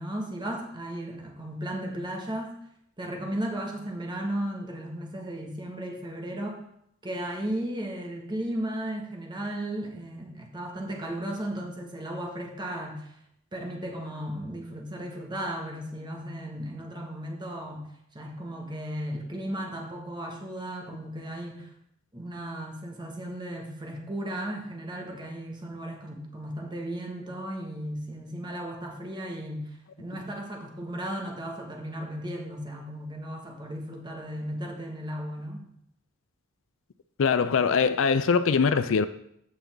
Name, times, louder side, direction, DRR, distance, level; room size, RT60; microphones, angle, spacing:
voice 1, 0.0-2.6 3.0-6.6 7.0-13.1 13.5-21.7 22.1-35.7, right 1 dB, 20° right, 1 dB, 1.5 m, -35 dB
voice 2, 37.2-39.1, left 5 dB, 65° left, 13 dB, 0.4 m, -22 dB
14.5 x 5.5 x 3.5 m, 0.74 s
head